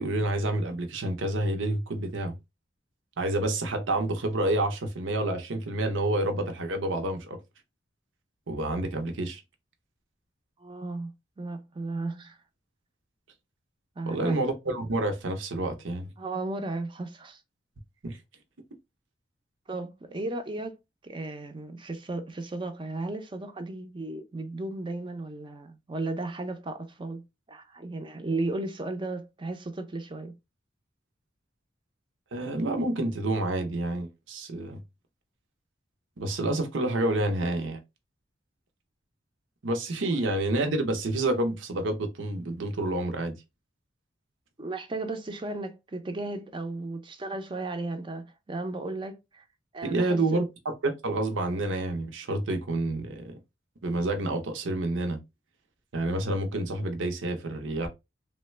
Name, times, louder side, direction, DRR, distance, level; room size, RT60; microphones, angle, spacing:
voice 1, 0.0-2.3 3.2-7.4 8.5-9.4 14.1-16.1 18.0-18.2 32.3-34.8 36.2-37.8 39.6-43.3 49.8-50.5 50.8-53.3 53.8-55.2 55.9-57.9, right 2 dB, 90° right, 0.7 m, -28 dB
voice 2, 10.6-11.1 11.4-12.4 14.0-14.4 16.2-17.4 19.7-20.8 21.0-27.2 27.5-30.3 40.0-40.2 44.6-49.4 49.7-50.4, right 2 dB, 25° right, 0.4 m, -35 dB
3.1 x 2.1 x 3.1 m
head